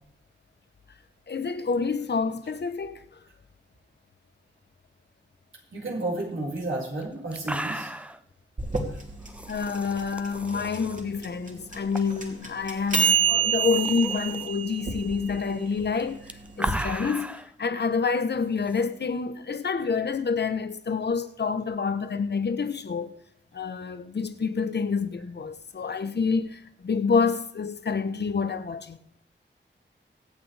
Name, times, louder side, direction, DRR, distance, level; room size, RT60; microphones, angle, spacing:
voice 1, 1.3-3.0 9.5-16.2 16.6-17.3 17.6-23.1 23.5-29.0, left 5 dB, 60° left, 1.0 m, -28 dB
voice 2, 5.7-7.9, right 2 dB, 85° right, 5.4 m, -31 dB
sound 1, 6.6-6.7 7.0-7.1 7.3-8.2 9.3-11.0 11.9-12.2 12.5-12.6 13.3-14.5 15.9-17.5 18.6-18.8, right 1 dB, 5° right, 0.6 m, -36 dB
sound 2, 8.6-16.7, right 7 dB, 40° right, 2.9 m, -28 dB
24.5 x 8.6 x 3.4 m
wide cardioid pair, 130°, 20 cm